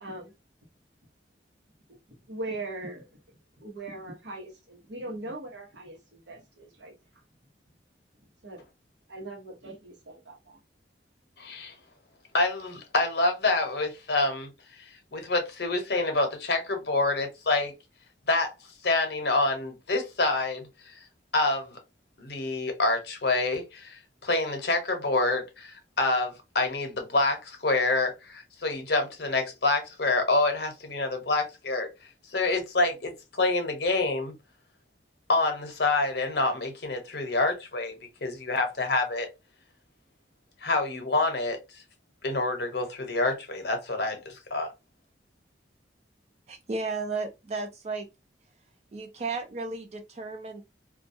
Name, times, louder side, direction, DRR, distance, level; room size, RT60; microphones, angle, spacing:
voice 1, 0.0-0.3 1.9-3.2 3.6-6.9 8.4-8.6 9.1-10.6, right 2 dB, 80° right, 0.9 m, -40 dB
voice 2, 11.4-11.7 12.3-14.8 15.1-17.7 18.3-18.5 18.8-21.0 21.3-21.8 22.2-31.9 32.3-34.4 35.3-37.9 38.2-39.3 40.6-41.8 42.2-44.7, left 2 dB, 65° left, 0.8 m, -27 dB
voice 3, 46.5-48.1 48.9-50.6, right 3 dB, 35° right, 0.3 m, -34 dB
2.3 x 2.2 x 2.6 m
head